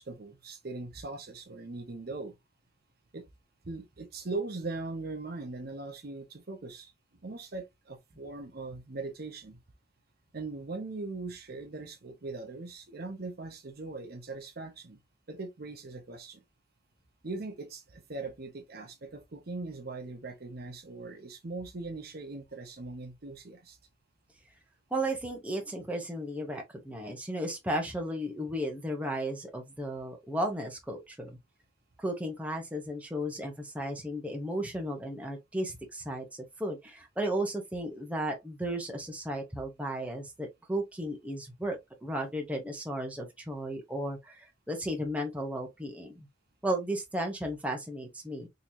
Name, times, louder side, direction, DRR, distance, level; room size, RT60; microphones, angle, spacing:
voice 1, 0.0-2.3 3.1-3.2 3.6-6.9 7.2-9.6 10.3-15.0 15.3-16.4 17.2-23.8, right 3 dB, 50° right, 0.8 m, -40 dB
voice 2, 24.9-31.4 32.0-46.3 46.6-48.5, right 1 dB, 5° right, 0.8 m, -34 dB
3.8 x 3.0 x 2.7 m
head